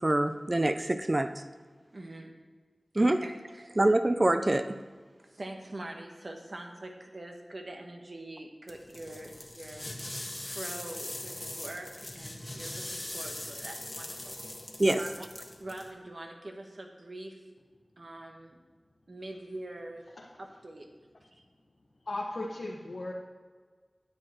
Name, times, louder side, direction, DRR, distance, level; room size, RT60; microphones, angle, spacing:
voice 1, 0.0-1.3 3.0-3.2 3.8-4.8 14.8-15.0, right 1 dB, 35° right, 9 dB, 0.5 m, -25 dB
voice 2, 1.9-2.3 2.9-3.8 5.3-9.9 10.4-14.3 14.9-15.1 15.6-17.4 18.0-18.6 19.1-20.1 20.4-20.9 21.3-21.4, right 1 dB, 60° right, 3 dB, 1.3 m, -44 dB
sound 1, 8.7-15.9, left 1 dB, 35° left, 1.4 m, -41 dB
voice 3, 21.9-23.1, left 2 dB, 70° left, -4 dB, 1.3 m, -36 dB
10.0 x 9.3 x 4.4 m, 1.5 s
wide cardioid pair, 55°, 0 cm